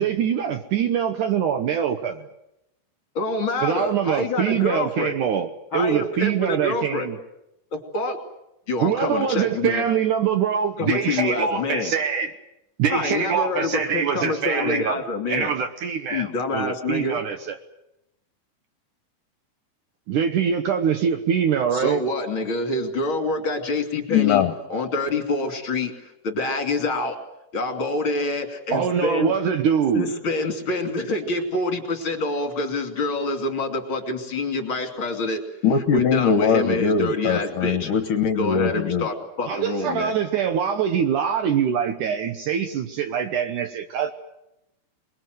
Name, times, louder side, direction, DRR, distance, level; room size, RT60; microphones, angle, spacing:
voice 1, 0.0-2.2 3.6-7.2 8.8-12.3 12.8-15.0 15.3-17.6 20.1-22.0 28.7-30.1 39.4-44.1, right 7 dB, 70° right, 8 dB, 2.2 m, -24 dB
voice 2, 3.1-5.1 5.7-7.1 7.7-8.2 8.7-9.8 10.8-11.9 12.9-15.5 16.1-17.2 21.7-24.4 24.7-27.2 27.5-29.3 29.9-35.4 35.9-37.9 38.4-40.1, left 2 dB, 35° left, 5 dB, 2.9 m, -26 dB
voice 3, 24.1-24.5 35.6-39.1, left 6 dB, 65° left, 8 dB, 2.4 m, -21 dB
27.5 x 21.5 x 7.9 m, 0.87 s
omnidirectional pair, 4.5 m